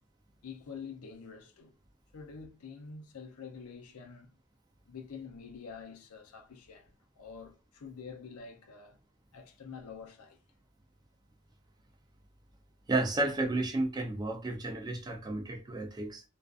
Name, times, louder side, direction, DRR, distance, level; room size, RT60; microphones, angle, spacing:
voice 1, 0.4-1.7 2.1-4.3 4.9-9.0 9.3-10.4, left 5 dB, 80° left, 0.5 m, -47 dB
voice 2, 12.9-16.2, right 2 dB, 20° right, 0.3 m, -32 dB
2.4 x 2.4 x 2.3 m
head